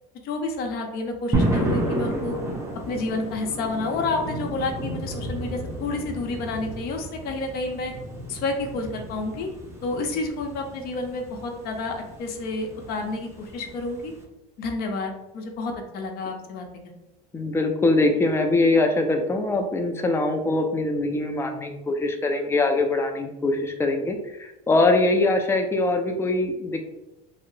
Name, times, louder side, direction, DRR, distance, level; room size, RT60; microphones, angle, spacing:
voice 1, 0.2-2.4 2.9-7.9 8.3-9.5 9.8-14.1 14.6-16.9, left 3 dB, 50° left, 3 dB, 0.7 m, -30 dB
sound 1, 1.3-14.2, right 1 dB, 15° right, 0.7 m, -32 dB
voice 2, 17.3-26.8, left 2 dB, 15° left, 4 dB, 0.4 m, -23 dB
2.7 x 2.1 x 3.9 m, 0.93 s
supercardioid pair, 125°, 20 cm